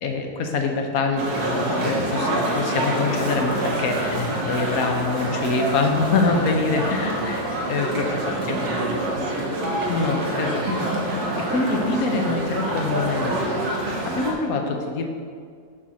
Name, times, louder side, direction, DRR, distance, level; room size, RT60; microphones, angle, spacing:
voice 1, 0.0-8.1 8.5-8.7 9.9-11.2 11.5-15.1, left 3 dB, 70° left, 3 dB, 1.3 m, -25 dB
sound 1, 1.2-14.3, right 1 dB, 85° right, 1.6 m, -26 dB
voice 2, 7.9-10.2, right 3 dB, 60° right, 3 dB, 1.1 m, -35 dB
7.3 x 4.3 x 6.0 m, 2.1 s
omnidirectional pair, 1.6 m